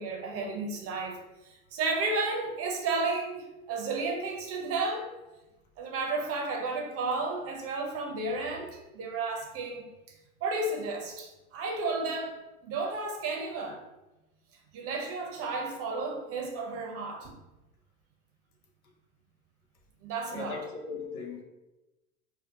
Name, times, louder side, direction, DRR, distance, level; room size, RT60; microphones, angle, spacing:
voice 1, 0.0-5.1 5.8-12.4 12.6-13.8 14.7-17.4 20.0-20.6, right 3 dB, 35° right, 0.6 m, -33 dB
voice 2, 20.3-21.4, left 5 dB, 85° left, 0.8 m, -38 dB
2.7 x 2.1 x 4.0 m
hypercardioid pair, 100°, 43 cm